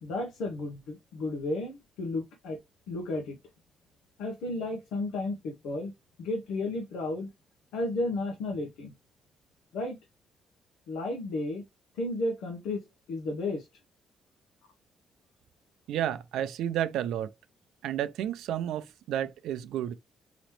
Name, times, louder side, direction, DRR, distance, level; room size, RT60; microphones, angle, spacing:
voice 1, 0.0-2.6 2.9-3.4 4.2-5.9 6.2-7.3 7.7-8.9 9.7-10.0 10.9-11.6 11.9-13.7, left 2 dB, 90° left, 1.1 m, -33 dB
voice 2, 15.9-17.3 17.8-19.9, right 11 dB, 85° right, 0.5 m, -31 dB
3.9 x 3.1 x 3.2 m
cardioid pair, 90°, 0 cm